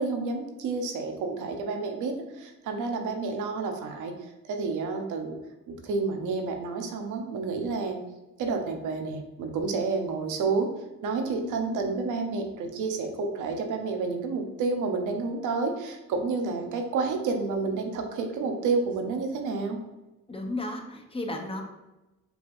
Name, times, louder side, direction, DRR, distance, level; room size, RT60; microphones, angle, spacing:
voice 1, 0.0-4.1 4.4-5.4 5.7-8.0 8.4-10.7 11.0-19.8, right 4 dB, 85° right, 4 dB, 0.8 m, -30 dB
voice 2, 11.4-11.8 20.3-21.6, left 1 dB, 20° left, 3 dB, 0.7 m, -34 dB
4.8 x 3.4 x 2.6 m, 1.0 s
cardioid pair, 90°, 30 cm